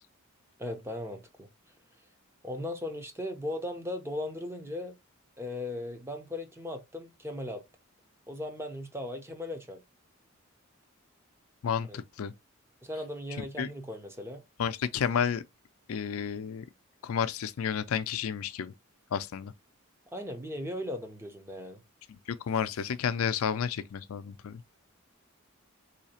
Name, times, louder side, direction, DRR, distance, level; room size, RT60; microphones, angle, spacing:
voice 1, 0.6-1.5 2.4-5.0 5.4-7.6 8.3-9.8 11.9-12.0 12.8-14.4 20.1-21.8, left 1 dB, 10° right, 0.6 m, -37 dB
voice 2, 11.6-12.3 13.4-13.7 14.6-15.4 15.9-16.6 17.0-18.7 19.1-19.5 22.1-24.6, left 7 dB, 85° left, 0.4 m, -31 dB
4.0 x 2.8 x 2.8 m
head